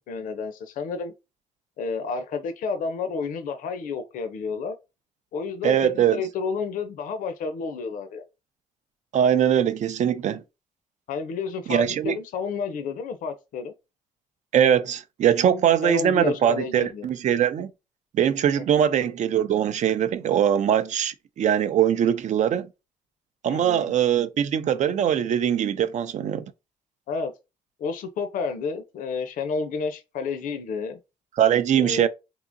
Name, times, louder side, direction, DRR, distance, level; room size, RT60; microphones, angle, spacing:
voice 1, 0.1-1.1 1.8-4.7 5.3-8.2 11.1-13.7 15.8-17.1 18.6-18.8 23.5-23.9 27.1-27.3 27.8-31.0 31.8-32.1, left 5 dB, 80° left, 0.5 m, -30 dB
voice 2, 5.6-6.2 9.1-10.4 11.7-12.2 14.5-17.7 18.1-22.7 23.4-26.4 31.4-32.1, right 9 dB, 60° right, 0.4 m, -22 dB
3.6 x 2.9 x 2.5 m
cardioid pair, 80°, 14 cm